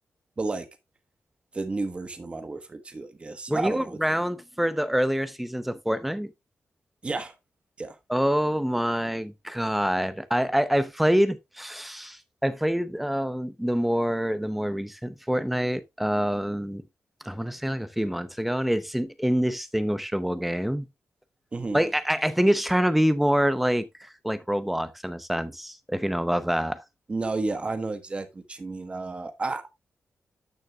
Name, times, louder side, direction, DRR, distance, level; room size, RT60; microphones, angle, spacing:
voice 1, 1.5-4.0 7.0-7.3 7.8-8.0 21.5-21.8 27.1-29.7, right 3 dB, 25° right, 1.2 m, -31 dB
voice 2, 3.5-6.3 8.1-16.8 17.2-20.9 21.7-26.8, equal, ahead, 0.7 m, -26 dB
13.0 x 6.4 x 2.3 m
wide cardioid pair, 175°, 5 cm